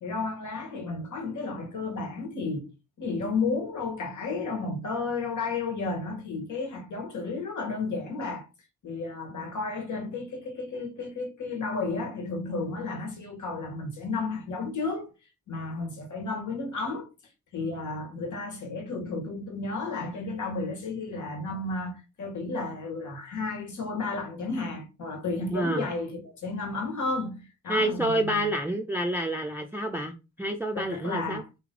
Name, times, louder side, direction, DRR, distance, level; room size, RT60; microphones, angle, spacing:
voice 1, 0.0-2.7 3.0-8.5 8.8-15.1 15.5-17.1 17.5-28.5 30.7-31.5, left 3 dB, 75° left, 1.6 m, -32 dB
voice 2, 25.5-25.8 27.7-31.4, right 1 dB, 5° right, 0.4 m, -28 dB
4.1 x 3.2 x 3.8 m
cardioid pair, 100°, 30 cm